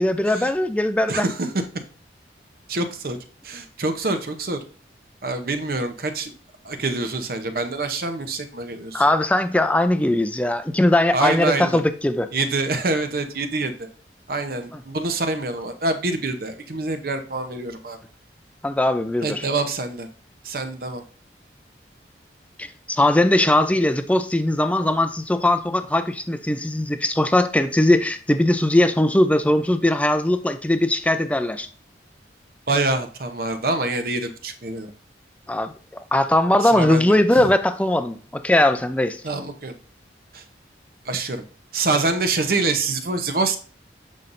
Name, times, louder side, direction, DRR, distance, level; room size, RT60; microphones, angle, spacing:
voice 1, 0.0-1.3 8.9-12.3 14.7-14.8 18.6-19.4 22.6-31.7 35.5-39.2, left 1 dB, 10° left, 10 dB, 0.4 m, -20 dB
voice 2, 1.1-1.5 2.7-3.2 3.4-4.6 5.2-6.3 6.6-9.0 11.1-11.8 12.3-13.7 14.3-18.0 19.2-20.1 20.4-21.0 32.7-34.9 36.6-37.5 39.2-39.7 40.3-40.4 41.1-41.4 41.7-43.6, right 3 dB, 55° right, 8 dB, 0.7 m, -25 dB
7.4 x 5.4 x 2.6 m, 0.40 s
head